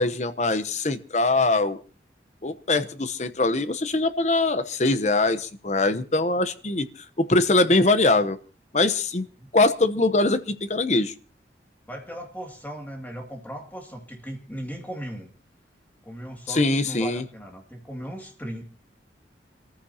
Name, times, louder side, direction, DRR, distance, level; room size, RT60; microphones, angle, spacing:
voice 1, 0.0-1.8 2.4-6.9 7.2-8.4 8.7-9.3 9.5-11.1 16.5-17.2, left 2 dB, 40° left, 12 dB, 0.9 m, -22 dB
voice 2, 11.9-15.3 16.0-18.6, equal, 10° left, 2 dB, 2.3 m, -37 dB
25.5 x 14.5 x 2.8 m, 0.37 s
head